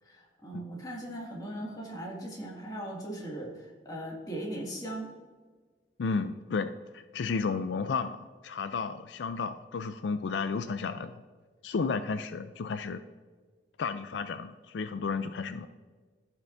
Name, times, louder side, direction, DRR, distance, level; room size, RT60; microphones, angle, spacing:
voice 1, 0.0-5.1, right 1 dB, 20° left, -3 dB, 2.1 m, -39 dB
voice 2, 6.0-11.2 11.6-13.0 13.8-15.7, left 5 dB, 80° left, 10 dB, 0.4 m, -33 dB
15.0 x 5.9 x 2.6 m, 1.4 s
head